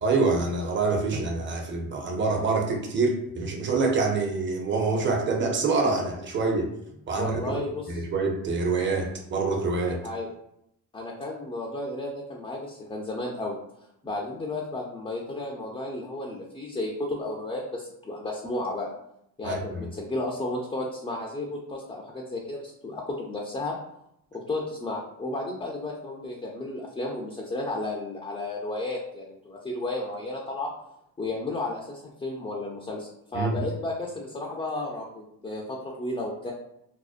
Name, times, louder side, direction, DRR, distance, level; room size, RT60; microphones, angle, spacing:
voice 1, 0.0-6.7 7.1-7.6 7.9-10.0 19.4-19.9 33.3-33.6, right 3 dB, 30° right, 2 dB, 0.6 m, -26 dB
voice 2, 7.1-8.0 10.0-10.3 10.9-13.6 14.0-18.9 19.4-23.7 24.3-30.7 31.2-36.5, left 2 dB, 15° left, -2 dB, 0.4 m, -33 dB
2.6 x 2.1 x 2.4 m, 0.76 s
supercardioid pair, 70°, 41 cm